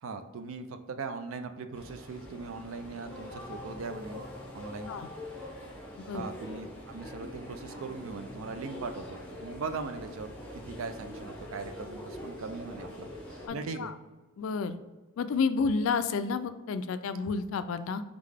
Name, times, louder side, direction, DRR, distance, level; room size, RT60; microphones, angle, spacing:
voice 1, 0.0-4.2 4.5-4.9 6.1-13.9, right 4 dB, 70° right, 8 dB, 0.4 m, -40 dB
sound 1, 1.7-13.5, left 1 dB, 10° left, 0.8 m, -44 dB
voice 2, 13.5-13.9 14.4-14.8 15.2-18.0, left 5 dB, 70° left, 11 dB, 0.3 m, -30 dB
3.7 x 3.6 x 3.4 m, 1.2 s
head